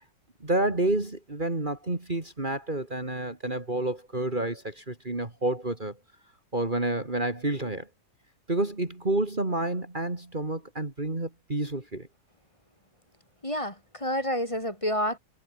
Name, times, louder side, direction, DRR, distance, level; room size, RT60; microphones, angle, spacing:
voice 1, 0.4-5.9 6.5-7.9 8.5-12.1, right 2 dB, 30° right, 3.0 m, -29 dB
voice 2, 13.4-15.2, equal, 20° left, 4.2 m, -29 dB
omnidirectional pair, 1.7 m